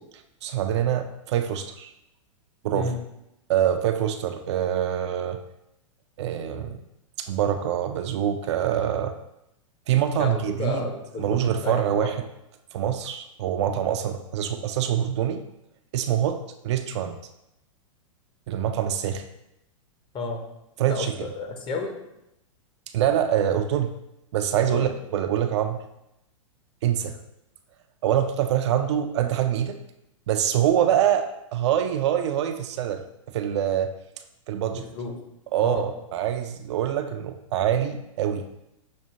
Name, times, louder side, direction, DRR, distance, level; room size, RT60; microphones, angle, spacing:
voice 1, 0.4-1.9 2.6-2.9 3.5-5.4 6.2-6.8 7.2-9.1 9.9-10.8 11.2-12.2 12.7-15.4 15.9-17.2 18.5-19.2 20.8-21.1 22.9-23.9 24.3-25.8 26.8-27.2 28.0-29.8 30.3-33.0 33.3-33.9 34.5-34.9 35.5-38.4, right 10 dB, 55° right, 7 dB, 0.4 m, -25 dB
voice 2, 10.2-12.1 20.1-20.4 20.8-21.9 24.6-24.9 34.8-35.1 35.6-35.8, left 3 dB, 30° left, 3 dB, 0.7 m, -32 dB
6.2 x 2.4 x 2.8 m, 0.85 s
hypercardioid pair, 105°, 17 cm